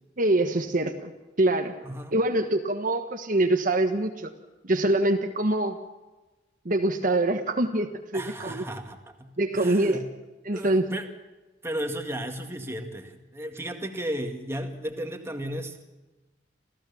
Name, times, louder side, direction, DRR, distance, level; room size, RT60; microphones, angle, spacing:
voice 1, 0.2-1.1 1.4-1.7 2.1-4.3 4.6-5.8 6.6-8.6 9.4-10.0 10.4-10.9, right 1 dB, 50° right, 5 dB, 1.3 m, -24 dB
voice 2, 8.1-10.1 10.5-11.1 11.6-15.8, equal, 15° right, 4 dB, 2.1 m, -34 dB
27.5 x 15.5 x 7.1 m, 1.1 s
head